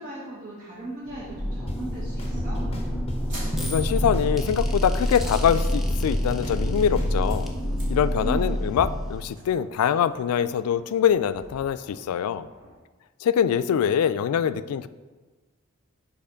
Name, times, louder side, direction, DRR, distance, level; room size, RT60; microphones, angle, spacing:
voice 1, 0.0-2.6 8.2-8.8, right 1 dB, 40° right, -6 dB, 1.2 m, -37 dB
sound 1, 1.1-9.6, equal, ahead, 0.6 m, -27 dB
sound 2, 1.7-1.8 2.2-3.2 3.6-4.7 5.0-7.4, left 1 dB, 30° left, 0.8 m, -36 dB
sound 3, 3.2-12.7, equal, 55° right, 2.1 m, -45 dB
voice 2, 3.6-7.5 7.9-12.5 13.2-14.9, left 8 dB, 90° left, 15 dB, 0.3 m, -24 dB
5.6 x 4.2 x 5.1 m, 1.3 s
head